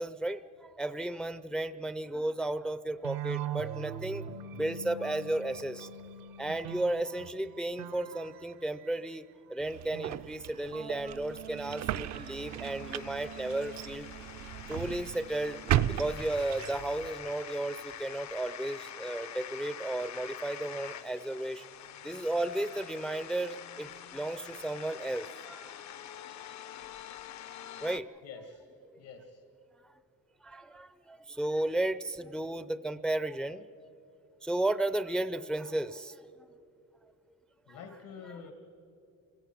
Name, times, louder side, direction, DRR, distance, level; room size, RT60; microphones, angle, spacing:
voice 1, 0.0-4.3 4.5-5.9 6.4-9.2 9.5-14.1 14.7-15.6 16.0-21.6 22.0-26.0 27.8-28.1 30.4-33.7 34.4-36.5 37.7-37.8, right 1 dB, ahead, 14 dB, 0.4 m, -34 dB
sound 1, 3.0-9.2 9.9-16.2, right 8 dB, 80° right, 0.9 m, -43 dB
sound 2, 9.6-17.1, right 12 dB, 55° right, 0.5 m, -36 dB
sound 3, 11.0-28.0, left 10 dB, 55° left, 0.7 m, -46 dB
voice 2, 28.2-28.7 29.0-29.4 35.7-35.8 37.7-38.5, left 5 dB, 80° left, 4 dB, 2.0 m, -47 dB
28.0 x 17.0 x 6.0 m, 2.7 s
cardioid pair, 105°, 33 cm